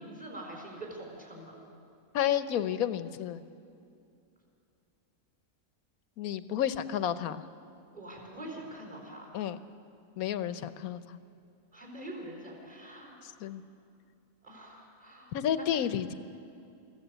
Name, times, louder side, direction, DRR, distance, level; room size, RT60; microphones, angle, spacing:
voice 1, 0.0-1.6 7.9-9.3 11.7-13.3 14.4-15.4, right 1 dB, 25° right, -1 dB, 4.5 m, -44 dB
voice 2, 2.1-3.4 6.2-7.4 9.3-9.6 10.2-11.2 13.2-13.6 15.3-16.1, left 10 dB, 85° left, 13 dB, 1.2 m, -31 dB
23.5 x 15.0 x 8.1 m, 2.5 s
omnidirectional pair, 1.5 m